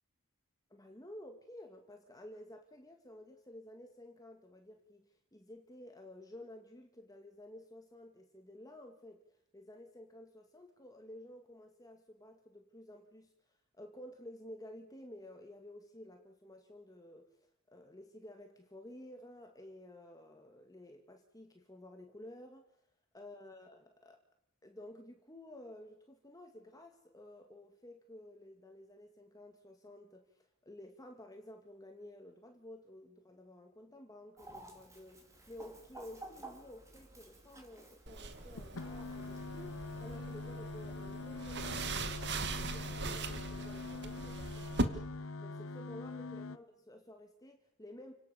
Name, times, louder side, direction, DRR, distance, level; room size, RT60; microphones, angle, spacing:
voice 1, 0.7-9.2 9.5-17.3 17.7-22.7 23.1-24.2 24.6-45.0 45.4-48.1, left 1 dB, 15° left, 4 dB, 2.1 m, -53 dB
Chicken rooster, 34.4-40.2, right 2 dB, 15° right, 4.3 m, -54 dB
sound 1, 38.1-44.8, right 2 dB, 55° right, 2.1 m, -40 dB
sound 2, 38.6-46.6, left 3 dB, 70° left, 0.9 m, -44 dB
29.5 x 18.5 x 7.0 m, 0.76 s
head